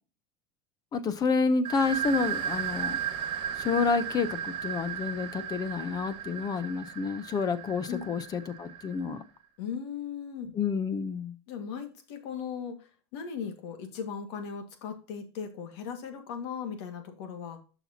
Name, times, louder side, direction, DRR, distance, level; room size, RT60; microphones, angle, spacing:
voice 1, 0.9-3.0 3.6-9.2 10.5-11.3, left 5 dB, 25° left, 14 dB, 0.8 m, -29 dB
sound 1, 1.6-9.1, right 8 dB, 35° right, 1.7 m, -35 dB
voice 2, 9.6-10.5 11.5-17.6, left 7 dB, 70° left, 6 dB, 1.9 m, -38 dB
11.0 x 6.0 x 2.8 m, 0.36 s
supercardioid pair, 145°, 15 cm